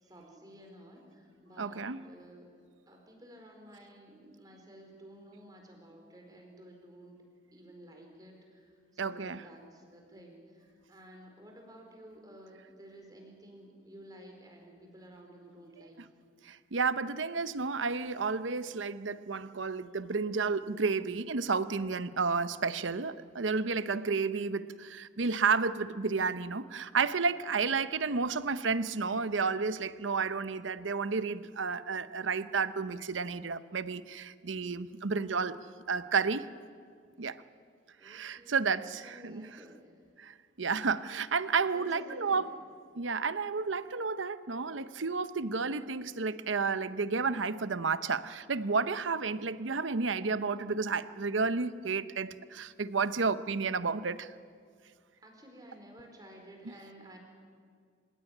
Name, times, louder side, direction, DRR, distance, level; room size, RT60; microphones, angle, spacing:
voice 1, 0.0-2.6 2.9-7.2 7.5-15.9 38.0-39.9 41.7-42.5 55.2-57.2, right 1 dB, 20° right, 2 dB, 4.5 m, -53 dB
voice 2, 1.6-2.0 9.0-9.4 16.4-36.5 37.2-37.4 38.0-39.5 40.2-42.5 43.0-54.3 56.6-56.7, right 4 dB, 85° right, 14 dB, 0.8 m, -31 dB
27.0 x 16.5 x 10.0 m, 2.1 s
head